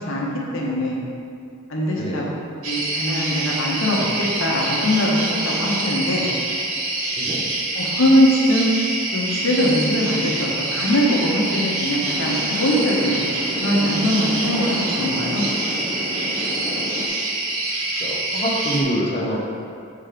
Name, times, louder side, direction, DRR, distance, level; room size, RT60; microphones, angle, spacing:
voice 1, 0.5-1.0 1.7-2.3 2.6-4.1 4.4-6.3 7.7-8.7 9.1-13.2 13.6-15.4, equal, 65° left, -3 dB, 1.0 m, -21 dB
voice 2, 1.9-2.3 7.1-7.5 16.6-16.9 18.0-19.4, equal, 25° left, -2 dB, 0.8 m, -26 dB
sound 1, 2.6-18.8, right 2 dB, 85° right, 1.0 m, -26 dB
sound 2, 12.0-17.1, equal, 20° right, 0.8 m, -31 dB
6.3 x 3.8 x 5.0 m, 2.4 s
head